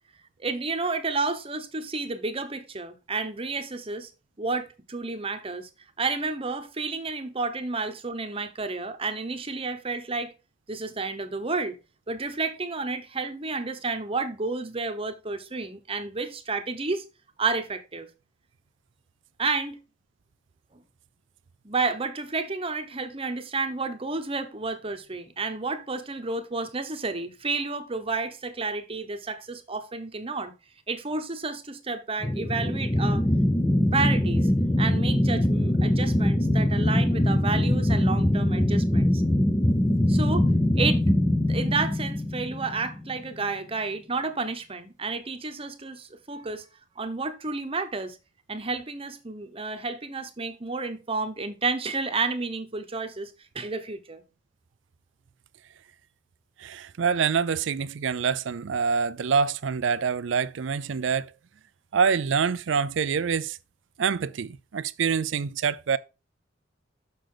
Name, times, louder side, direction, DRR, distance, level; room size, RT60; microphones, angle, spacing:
voice 1, 0.4-4.1 4.4-5.7 6.0-10.3 10.7-11.8 12.1-17.0 17.4-18.1 19.4-19.8 20.7-20.8 21.6-30.5 30.9-33.2 33.9-34.5 34.8-39.2 40.1-40.5 40.7-41.1 41.4-46.6 47.0-48.2 48.5-54.2, right 3 dB, 30° right, 1.0 m, -31 dB
sound 1, 32.2-43.1, left 1 dB, 15° left, 0.6 m, -23 dB
voice 2, 56.6-61.3 61.9-63.6 64.0-66.0, right 6 dB, 65° right, 0.4 m, -26 dB
6.5 x 6.3 x 3.8 m
head